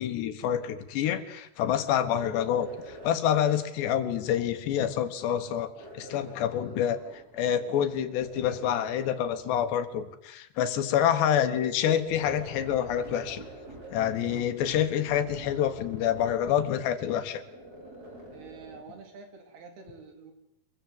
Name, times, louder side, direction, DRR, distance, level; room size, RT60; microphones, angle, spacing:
voice 1, 0.0-5.7 6.0-7.0 7.3-13.4 13.9-17.4, left 10 dB, 80° left, 9 dB, 3.6 m, -27 dB
sound 1, 2.3-5.1 5.7-7.9 8.2-10.0 11.0-18.8, right 1 dB, 20° right, 6.2 m, -47 dB
voice 2, 18.3-20.3, right 5 dB, 65° right, 6 dB, 5.2 m, -47 dB
25.0 x 23.0 x 8.0 m, 0.83 s
omnidirectional pair, 5.0 m